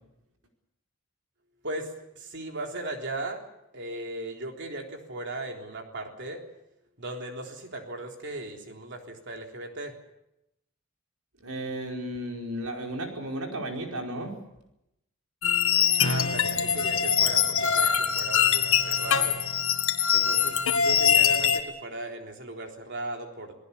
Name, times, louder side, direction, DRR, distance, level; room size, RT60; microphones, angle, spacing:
voice 1, 1.6-3.4 3.7-6.4 7.0-10.0 16.0-19.4 20.1-23.6, right 2 dB, 55° right, 3 dB, 3.7 m, -37 dB
voice 2, 11.4-14.3, right 1 dB, 75° right, 2 dB, 5.0 m, -34 dB
sound 1, 15.4-21.6, left 8 dB, 65° left, 1.9 m, -23 dB
28.0 x 19.0 x 7.1 m, 0.84 s
head